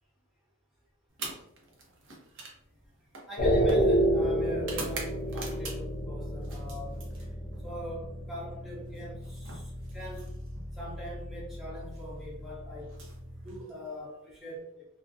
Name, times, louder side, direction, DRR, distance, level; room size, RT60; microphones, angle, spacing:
sound 1, 1.1-6.0 6.4-7.7 8.9-10.7 11.8-12.0 12.8-14.0, right 3 dB, 55° right, 0.6 m, -45 dB
voice 1, 3.0-7.4 7.6-10.4 10.7-13.0 13.4-14.8, equal, ahead, -6 dB, 0.7 m, -43 dB
sound 2, 3.4-13.6, equal, 45° left, 0.5 m, -31 dB
2.4 x 2.0 x 2.5 m, 0.81 s
head